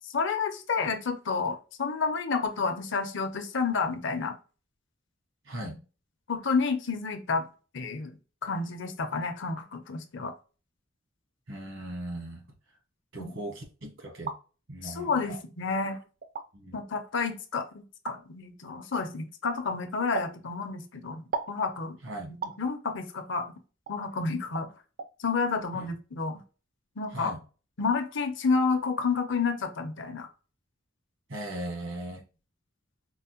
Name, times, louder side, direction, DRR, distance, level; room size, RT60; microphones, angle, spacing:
voice 1, 0.1-4.3 6.3-7.5 7.7-8.2 8.4-10.3 13.2-13.3 14.8-16.0 16.7-22.0 22.6-23.5 23.9-24.7 25.2-26.4 27.0-27.3 27.8-30.3, left 4 dB, 65° left, 0.7 m, -30 dB
voice 2, 5.5-5.8 11.5-12.4 13.1-14.3 14.7-15.4 16.5-16.8 22.0-22.3 25.7-25.9 27.1-27.4 31.3-32.2, right 1 dB, 75° right, 1.2 m, -38 dB
sound 1, 14.0-14.4 15.3-15.4 16.2-16.5 18.1-18.2 20.2-20.4 21.3-21.6 22.4-22.6 23.9-24.0 24.6-24.7 25.0-25.1, right 5 dB, 50° right, 0.4 m, -34 dB
4.6 x 2.0 x 2.8 m
head